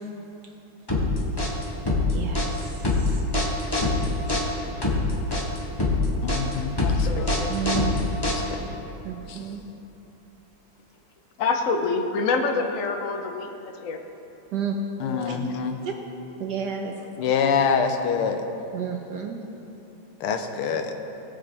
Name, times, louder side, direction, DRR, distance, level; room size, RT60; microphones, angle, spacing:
sound 1, 0.9-8.7, left 2 dB, 15° left, 0.9 m, -24 dB
voice 1, 6.2-7.3 8.5-8.6 9.3-9.5 15.0-15.8 17.2-18.5 20.2-20.9, left 6 dB, 85° left, 5 dB, 1.7 m, -25 dB
voice 2, 6.8-7.5 11.4-14.0 15.0-15.4, left 4 dB, 65° left, 4 dB, 0.8 m, -27 dB
voice 3, 7.5-8.0 9.0-9.6 14.5-14.8 15.3-15.4 15.8-15.9 16.4-16.9 18.7-19.4, right 8 dB, 65° right, 2 dB, 1.1 m, -30 dB
18.0 x 7.7 x 3.4 m, 3.0 s
omnidirectional pair, 2.4 m